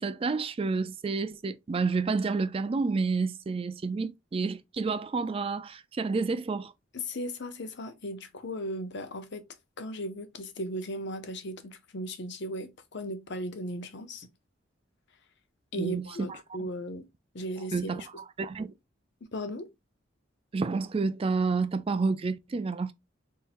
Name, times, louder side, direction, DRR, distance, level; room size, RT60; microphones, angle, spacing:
voice 1, 0.0-6.7 15.8-16.7 17.7-18.7 20.5-22.9, right 4 dB, 30° right, 0.3 m, -30 dB
voice 2, 6.9-9.4 9.8-14.3 15.7-17.0 17.3-18.1 19.3-19.7, equal, 60° left, 0.8 m, -36 dB
4.2 x 3.6 x 2.5 m
head